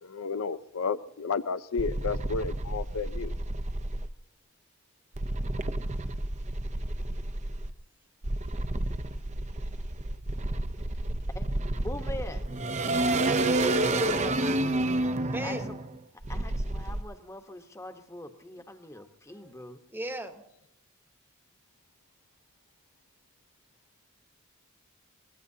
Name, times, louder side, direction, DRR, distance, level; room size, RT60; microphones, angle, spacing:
voice 1, 0.0-3.4, left 5 dB, 90° left, 0.6 m, -32 dB
sound 1, 1.8-4.1 5.2-7.7 8.2-17.0, right 2 dB, 35° right, 0.7 m, -30 dB
voice 2, 11.3-12.4 15.4-15.8 16.3-19.8, left 1 dB, 15° left, 1.1 m, -42 dB
voice 3, 13.7-14.5 15.2-15.7 18.9-19.5 19.9-20.4, right 1 dB, 10° right, 1.1 m, -39 dB
24.5 x 21.0 x 2.8 m
head